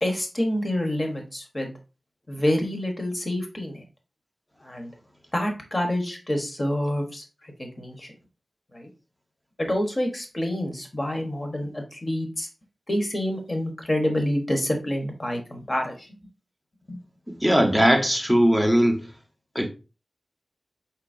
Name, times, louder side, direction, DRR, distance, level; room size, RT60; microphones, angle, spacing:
voice 1, 0.0-1.7 2.3-3.8 4.6-4.9 5.3-8.1 8.7-8.9 9.6-12.5 12.9-16.1 16.9-17.0, left 1 dB, 30° left, 1.2 m, -27 dB
voice 2, 17.4-19.0 19.5-19.7, equal, 5° left, 0.9 m, -19 dB
4.6 x 4.0 x 2.6 m
wide cardioid pair, 90°, 0 cm